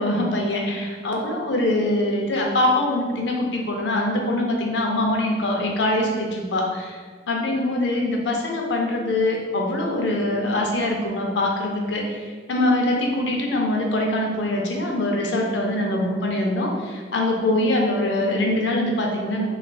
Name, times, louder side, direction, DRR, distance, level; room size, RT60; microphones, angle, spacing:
voice 1, 0.0-7.0 7.3-19.5, left 1 dB, 80° left, 1 dB, 0.6 m, -23 dB
3.9 x 3.1 x 2.3 m, 1.6 s
head